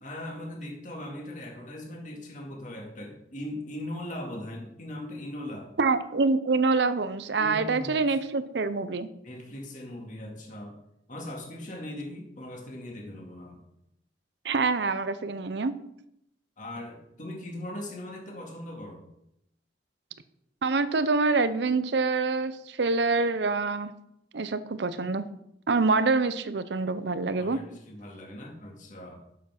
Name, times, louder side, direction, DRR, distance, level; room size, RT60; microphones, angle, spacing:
voice 1, 0.0-5.7 7.4-8.0 9.2-10.8 11.1-13.6 16.6-19.1 27.4-29.2, left 1 dB, 45° left, 0 dB, 2.1 m, -39 dB
voice 2, 5.8-9.1 14.4-15.7 20.6-23.9 24.3-25.2 25.7-27.6, right 3 dB, 65° right, 13 dB, 0.6 m, -26 dB
7.2 x 7.0 x 5.9 m, 0.80 s
head